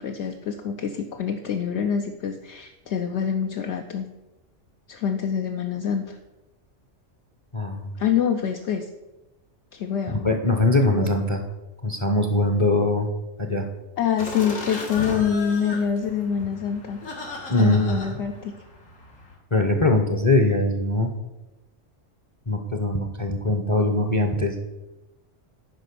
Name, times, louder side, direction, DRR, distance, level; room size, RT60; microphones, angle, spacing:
voice 1, 0.0-4.1 4.9-6.2 8.0-8.9 9.7-10.2 14.0-17.0 17.6-18.5, left 7 dB, 65° left, 4 dB, 0.9 m, -26 dB
voice 2, 7.5-7.9 10.1-11.4 11.8-13.1 13.4-13.6 17.5-18.1 19.5-21.1 22.5-24.6, left 2 dB, 30° left, 5 dB, 0.7 m, -22 dB
sound 1, 14.2-19.3, left 2 dB, 85° left, 2.2 m, -36 dB
10.0 x 5.0 x 6.8 m, 1.0 s
omnidirectional pair, 1.3 m